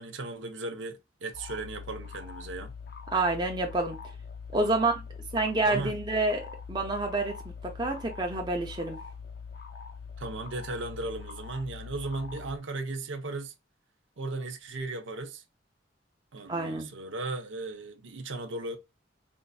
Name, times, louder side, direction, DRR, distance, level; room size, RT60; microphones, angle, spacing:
voice 1, 0.0-2.7 5.7-6.0 10.2-13.5 14.2-15.4 16.3-18.8, right 2 dB, 75° right, 0.7 m, -36 dB
sound 1, 1.3-12.6, left 5 dB, 50° left, 0.5 m, -43 dB
voice 2, 3.1-4.0 4.5-5.0 5.3-6.4 6.7-7.3 7.6-9.0 16.5-16.9, right 2 dB, 20° right, 0.7 m, -28 dB
4.4 x 2.5 x 2.2 m
head